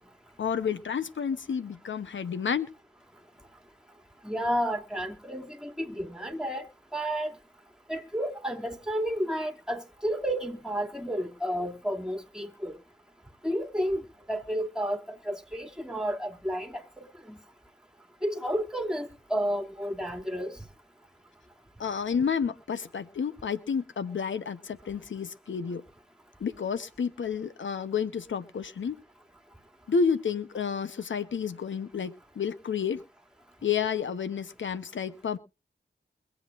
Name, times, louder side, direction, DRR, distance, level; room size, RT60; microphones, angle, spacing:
voice 1, 0.4-2.7 21.8-25.8 26.4-29.0 29.9-33.0 33.6-35.4, left 6 dB, 85° left, 0.8 m, -30 dB
voice 2, 4.2-6.6 6.9-7.3 7.9-12.7 13.4-17.4 18.2-20.5, equal, 5° right, 2.5 m, -31 dB
23.0 x 8.0 x 2.5 m
cardioid pair, 50°, 19 cm